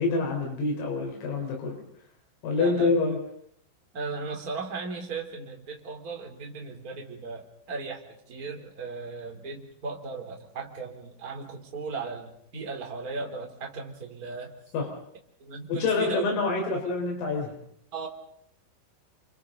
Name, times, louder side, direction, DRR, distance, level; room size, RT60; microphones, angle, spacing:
voice 1, 0.0-1.8 2.4-3.2 14.7-14.9 15.7-17.6, left 3 dB, 90° left, 0 dB, 6.8 m, -26 dB
voice 2, 2.5-2.9 3.9-14.5 15.4-16.2 17.9-18.1, right 4 dB, 20° right, 1 dB, 2.9 m, -37 dB
28.5 x 28.5 x 3.9 m, 0.69 s
omnidirectional pair, 5.8 m